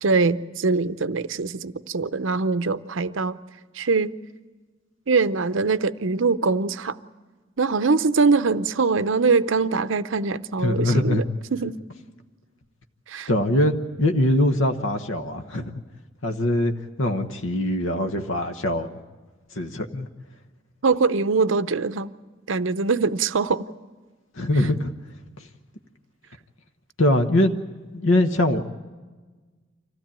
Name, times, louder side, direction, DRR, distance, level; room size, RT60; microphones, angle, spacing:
voice 1, 0.0-3.4 3.8-4.1 5.1-7.0 7.6-11.2 11.5-11.8 13.1-13.3 20.8-22.1 22.5-23.6, right 4 dB, 65° right, 14 dB, 0.7 m, -22 dB
voice 2, 10.6-11.2 13.3-15.7 16.2-16.7 17.0-19.0 19.5-20.1 24.4-24.9 27.0-27.5 27.9-28.6, left 1 dB, 70° left, 6 dB, 1.2 m, -22 dB
25.5 x 16.0 x 8.9 m, 1.3 s
head